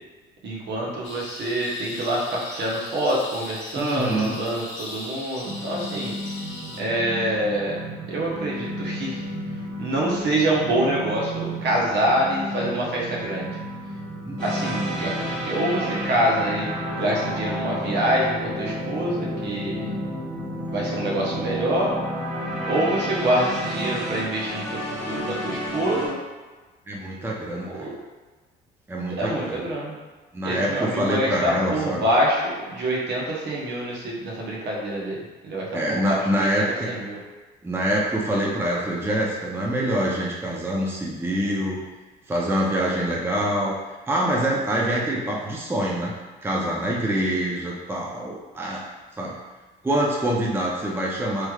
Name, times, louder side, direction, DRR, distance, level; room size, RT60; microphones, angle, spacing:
voice 1, 0.4-6.1 6.8-7.8 8.1-9.2 9.8-13.6 14.4-19.7 20.7-21.9 22.7-26.2 27.8-28.0 29.2-30.0 30.4-32.4 32.7-35.2 35.4-37.2, right 1 dB, 60° right, -4 dB, 1.0 m, -26 dB
sound 1, 1.0-6.8, left 1 dB, 75° left, 0.8 m, -38 dB
voice 2, 3.8-4.4 14.2-14.4 26.9-27.9 28.9-29.7 30.3-32.0 35.7-36.9 37.6-41.8 42.3-43.8 44.1-46.1 46.4-48.8 49.2-49.4 49.8-51.5, right 1 dB, 10° right, -4 dB, 0.6 m, -25 dB
sound 2, 5.4-24.3, right 1 dB, 80° right, 1.1 m, -36 dB
sound 3, 14.4-26.1, equal, 5° left, 1.5 m, -30 dB
3.2 x 3.1 x 2.3 m, 1.3 s
supercardioid pair, 80°, 20 cm